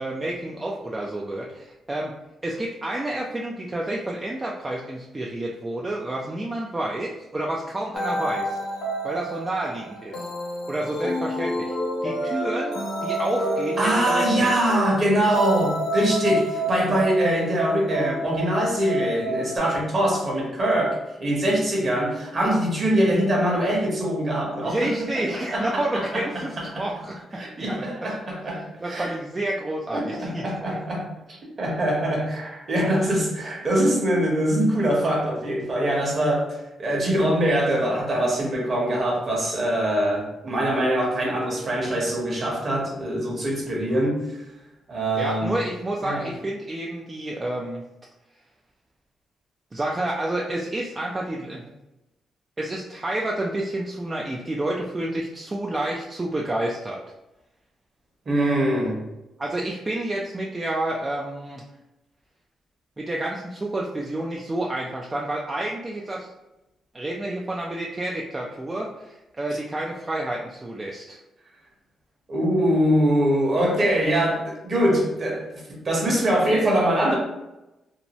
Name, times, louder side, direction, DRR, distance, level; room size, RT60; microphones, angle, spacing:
voice 1, 0.0-2.1 2.4-8.6 9.0-10.3 10.7-11.7 12.0-14.5 24.6-28.1 28.8-30.5 45.2-47.8 49.7-51.7 52.6-57.0 59.4-61.6 63.0-66.3 66.9-71.2, right 1 dB, 25° right, -2 dB, 0.4 m, -29 dB
sound 1, 7.9-19.6, equal, 85° left, 0.7 m, -28 dB
voice 2, 13.8-24.9 25.5-26.9 27.4-29.1 29.9-31.1 31.6-44.4 44.9-45.6 46.0-46.3 58.3-59.0 72.3-77.1, right 1 dB, 45° right, -2 dB, 1.0 m, -23 dB
2.7 x 2.2 x 3.0 m, 0.96 s
cardioid pair, 85°, 0 cm